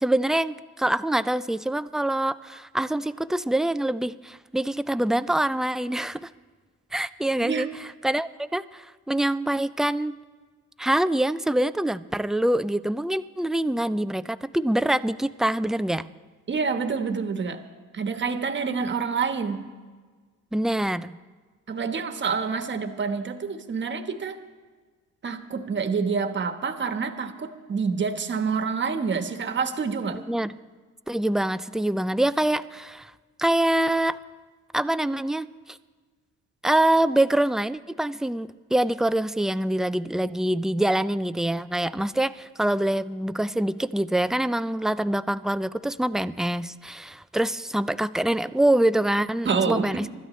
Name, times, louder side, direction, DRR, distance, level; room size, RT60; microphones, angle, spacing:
voice 1, 0.0-6.3 6.9-10.2 10.8-16.1 20.5-21.2 30.3-30.5 31.1-33.1 33.4-34.2 34.7-35.8 36.6-50.1, right 1 dB, ahead, 13 dB, 0.3 m, -25 dB
voice 2, 16.5-17.6 17.9-19.7 21.7-24.4 25.2-30.2 49.4-50.1, right 5 dB, 40° right, 7 dB, 1.2 m, -27 dB
24.5 x 13.0 x 3.2 m, 1.5 s
cardioid pair, 90°, 30 cm